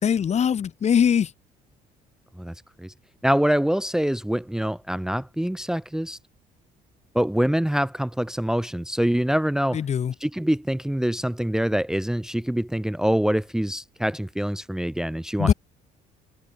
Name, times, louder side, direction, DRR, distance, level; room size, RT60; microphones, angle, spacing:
voice 1, 0.0-1.3 9.7-10.1 15.4-15.5, left 8 dB, 40° left, 1.6 m, -21 dB
voice 2, 2.4-2.9 3.2-6.2 7.1-9.8 10.2-15.5, equal, 5° right, 1.0 m, -25 dB
cardioid pair, 110°, 17 cm